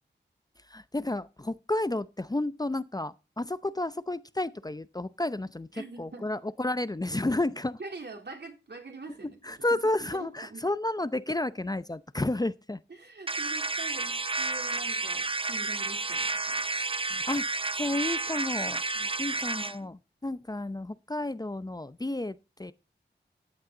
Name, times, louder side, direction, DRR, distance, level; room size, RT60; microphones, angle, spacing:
voice 1, 0.7-7.8 9.4-12.8 17.1-17.5 17.8-18.8 19.2-22.7, left 2 dB, 20° left, 0.7 m, -31 dB
voice 2, 5.7-6.2 7.8-9.8 10.1-10.7 12.9-16.6 18.9-19.4 19.6-19.7, right 3 dB, 65° right, 3.5 m, -44 dB
sound 1, 13.3-19.8, right 3 dB, 30° right, 0.6 m, -31 dB
14.5 x 8.6 x 3.9 m
cardioid pair, 50°, 19 cm